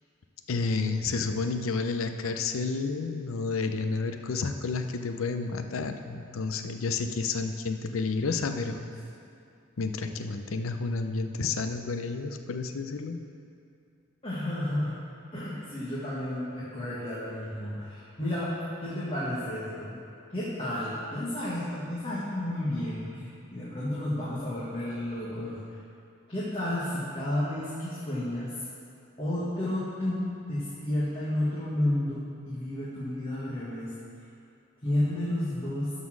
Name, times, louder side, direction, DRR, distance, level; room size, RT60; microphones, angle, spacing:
voice 1, 0.5-8.9 9.8-13.2, left 4 dB, 70° left, 7 dB, 0.6 m, -30 dB
voice 2, 14.2-15.0 15.3-20.0 20.3-25.6 26.3-28.5 29.2-33.9 34.8-35.9, left 1 dB, 25° left, -9 dB, 1.4 m, -31 dB
12.5 x 4.2 x 6.1 m, 2.5 s
head